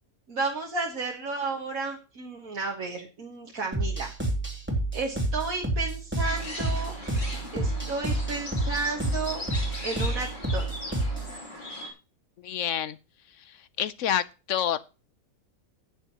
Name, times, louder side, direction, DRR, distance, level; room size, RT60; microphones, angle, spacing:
voice 1, 0.3-4.1 4.9-7.0 7.5-9.4 9.8-10.3 10.5-10.6, right 3 dB, 70° right, 2.0 m, -32 dB
sound 1, 3.7-11.3, right 1 dB, 5° right, 2.9 m, -29 dB
sound 2, 6.2-11.9, left 2 dB, 35° left, 3.2 m, -39 dB
voice 2, 12.4-13.0 13.8-14.8, left 10 dB, 65° left, 1.0 m, -27 dB
17.0 x 6.9 x 3.0 m
omnidirectional pair, 1.5 m